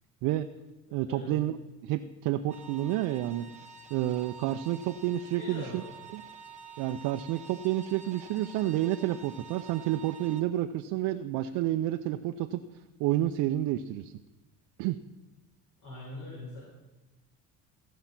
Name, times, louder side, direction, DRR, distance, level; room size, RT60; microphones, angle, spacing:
voice 1, 0.9-1.6 1.8-3.5 3.9-5.8 6.1-6.2 6.8-12.6 13.0-14.1 14.8-15.0, right 13 dB, 80° right, 7 dB, 0.5 m, -30 dB
sound 1, 2.5-10.4, right 4 dB, 20° right, 1.1 m, -48 dB
voice 2, 5.4-5.9 15.8-16.7, left 1 dB, 60° left, -7 dB, 4.8 m, -42 dB
15.0 x 5.6 x 5.9 m, 1.1 s
cardioid pair, 100°, 33 cm